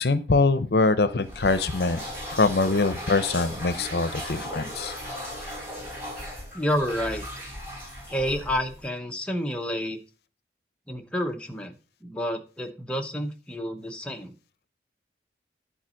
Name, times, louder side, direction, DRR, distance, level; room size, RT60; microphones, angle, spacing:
voice 1, 0.0-2.0 2.3-4.9, left 3 dB, 65° left, 13 dB, 0.7 m, -23 dB
sound 1, 1.2-8.9, equal, 15° right, 4.1 m, -37 dB
voice 2, 6.5-7.5 8.1-10.0 10.9-14.4, equal, 5° left, 3 dB, 0.8 m, -30 dB
10.5 x 4.0 x 6.3 m, 0.36 s
head